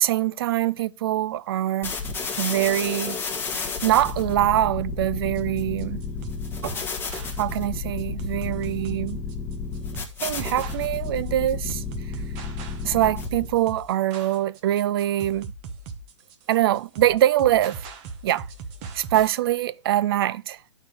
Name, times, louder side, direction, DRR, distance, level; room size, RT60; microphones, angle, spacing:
voice 1, 0.0-1.9 2.4-3.2 3.5-6.0 6.6-6.8 7.4-9.2 10.2-11.8 12.8-15.5 16.5-17.8 18.2-18.5 18.9-20.6, right 13 dB, 50° right, 0.4 m, -23 dB
sound 1, 1.8-13.6, left 4 dB, 15° left, 1.2 m, -31 dB
sound 2, 5.3-19.4, right 4 dB, 35° right, 1.0 m, -39 dB
11.5 x 4.5 x 3.4 m
hypercardioid pair, 130°, 15 cm